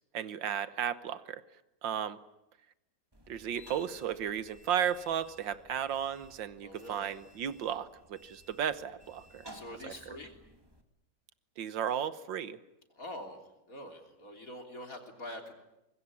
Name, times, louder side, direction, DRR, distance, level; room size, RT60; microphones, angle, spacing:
voice 1, 0.1-1.4 1.8-2.2 3.3-9.5 9.8-10.2 11.6-12.6, right 9 dB, 80° right, 14 dB, 1.8 m, -34 dB
sound 1, 3.1-10.8, equal, 15° right, 2.2 m, -56 dB
voice 2, 6.6-7.1 9.5-10.3 13.0-15.5, left 1 dB, 45° left, 3 dB, 3.7 m, -45 dB
24.5 x 21.0 x 9.6 m, 0.91 s
omnidirectional pair, 2.0 m